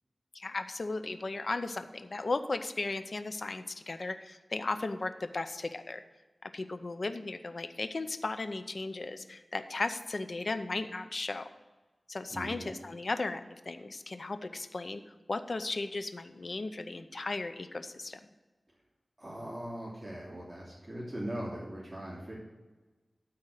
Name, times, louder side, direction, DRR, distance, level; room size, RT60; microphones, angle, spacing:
voice 1, 0.3-6.0 6.4-11.5 12.1-15.0 15.3-18.2, left 3 dB, 60° left, 10 dB, 0.6 m, -36 dB
voice 2, 12.3-12.7 19.2-22.3, right 1 dB, 25° right, -7 dB, 3.0 m, -40 dB
12.5 x 4.3 x 6.5 m, 1.2 s
wide cardioid pair, 75°, 0 cm